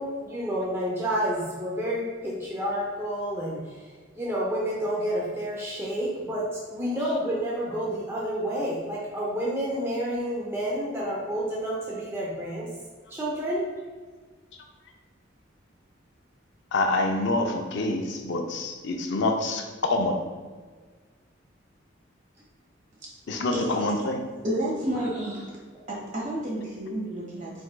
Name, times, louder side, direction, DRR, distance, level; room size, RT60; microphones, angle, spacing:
voice 1, 0.0-3.9 4.2-12.7 13.1-13.7, equal, 15° right, -5 dB, 0.6 m, -29 dB
voice 2, 16.7-20.3 23.3-24.2, left 2 dB, 65° left, 3 dB, 0.5 m, -26 dB
voice 3, 23.5-23.9 24.4-25.4 25.9-27.5, right 1 dB, 40° right, -4 dB, 1.5 m, -30 dB
4.4 x 4.4 x 2.2 m, 1.5 s
head